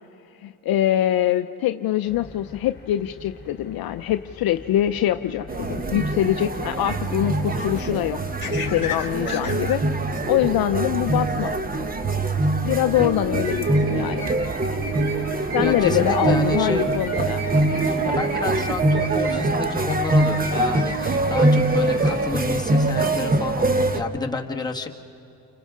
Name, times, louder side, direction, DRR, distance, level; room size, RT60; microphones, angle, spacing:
voice 1, 0.4-9.8 10.2-11.5 12.6-14.3 15.5-17.4, left 13 dB, 55° left, 9 dB, 0.6 m, -24 dB
sound 1, 2.1-14.9, left 5 dB, 25° left, 3.4 m, -40 dB
sound 2, 5.5-24.0, right 2 dB, 20° right, 1.0 m, -23 dB
sound 3, 13.3-22.1, right 1 dB, 65° right, 5.8 m, -37 dB
voice 2, 15.6-16.9 17.8-24.9, left 4 dB, 10° left, 0 dB, 1.5 m, -30 dB
29.5 x 24.5 x 3.7 m, 2.8 s
supercardioid pair, 90°, 45 cm